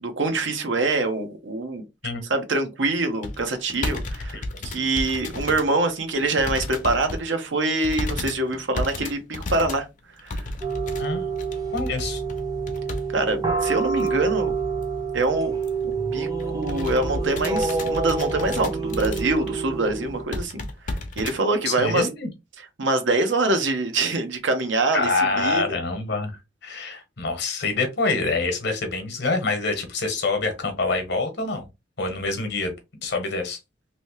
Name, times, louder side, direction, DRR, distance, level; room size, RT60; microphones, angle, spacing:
voice 1, 0.0-1.8 2.3-9.9 10.2-10.5 13.1-14.5 15.1-15.6 15.8-20.6 21.2-22.1 22.6-25.8, right 2 dB, 75° right, 0.8 m, -25 dB
sound 1, 3.2-5.7 6.1-7.3 7.8-13.1 13.3-13.4 14.0-14.3 14.7-14.8 15.1-15.2 15.6-15.8 16.2-19.5 19.9-20.0 20.3-21.4 22.0-22.1, left 2 dB, 45° left, 0.7 m, -32 dB
sound 2, 10.6-20.2, right 4 dB, 20° right, 0.7 m, -27 dB
voice 2, 11.7-12.2 21.6-22.3 24.9-31.7 32.0-32.7 33.0-33.6, left 3 dB, 60° left, 1.0 m, -26 dB
3.0 x 2.7 x 3.0 m
head